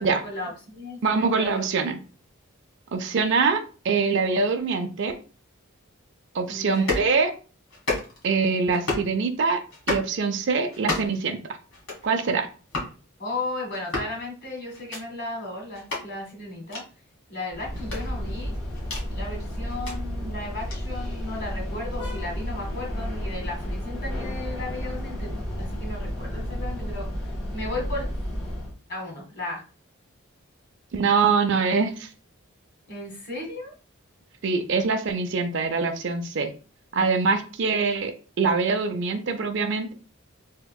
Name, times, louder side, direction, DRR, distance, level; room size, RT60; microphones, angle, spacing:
voice 1, 0.0-1.7 6.5-7.0 13.2-16.8 17.3-18.5 19.1-25.3 25.6-28.1 28.9-29.6 32.9-33.7, left 2 dB, 55° left, -1 dB, 1.5 m, -35 dB
voice 2, 1.0-2.0 2.9-5.1 6.3-7.3 8.2-9.6 9.9-11.4 12.0-12.5 30.9-32.1 34.4-36.5 36.9-39.9, right 4 dB, 55° right, 7 dB, 0.4 m, -24 dB
sound 1, 6.7-7.1 7.7-8.3 8.7-9.1 9.7-10.1 10.7-11.2 11.7-12.1 12.7-12.9 13.7-14.1 14.7-15.0 15.7-16.0 16.7-16.8 17.7-19.1 19.7-20.0 20.7-20.8, left 3 dB, 70° left, 1.4 m, -31 dB
sound 2, 17.5-28.7, equal, 85° left, 1.6 m, -32 dB
3.5 x 2.9 x 2.3 m, 0.36 s
head